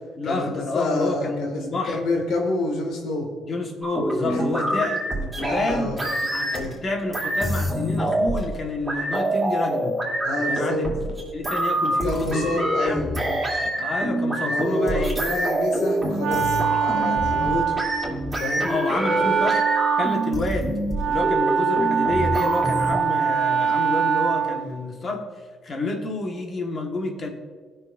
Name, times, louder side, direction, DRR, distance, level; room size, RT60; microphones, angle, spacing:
voice 1, 0.2-2.0 3.4-5.9 6.3-6.5 6.8-10.0 10.4-10.9 11.3-13.0 13.8-15.1 18.7-19.6 20.0-20.7 21.1-25.2 25.6-27.3, left 2 dB, 45° left, 2 dB, 1.5 m, -29 dB
voice 2, 0.7-1.7 1.9-3.3 4.3-6.0 6.5-6.7 10.2-10.8 12.0-13.4 14.4-17.7 18.4-18.7, left 2 dB, 90° left, 1 dB, 2.0 m, -28 dB
sound 1, 3.8-6.8 7.1-8.6 8.8-23.0, right 1 dB, 15° right, 2.9 m, -26 dB
Wind instrument woodwind instrument, 15.7-24.8, right 7 dB, 90° right, 0.9 m, -24 dB
18.0 x 6.4 x 2.6 m, 1.5 s
cardioid pair, 90°, 0 cm